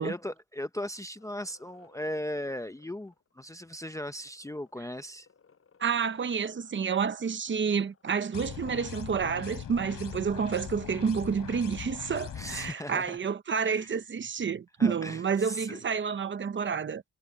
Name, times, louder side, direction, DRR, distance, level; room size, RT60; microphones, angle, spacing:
voice 1, 0.0-5.3 12.3-13.2 13.7-13.9 14.8-15.8, left 1 dB, 10° left, 0.6 m, -37 dB
sound 1, 1.1-10.5, left 6 dB, 35° left, 7.5 m, -64 dB
voice 2, 5.8-17.0, right 6 dB, 30° right, 0.8 m, -29 dB
sound 2, 8.3-12.7, left 9 dB, 55° left, 3.1 m, -40 dB
cardioid pair, 150°, 38 cm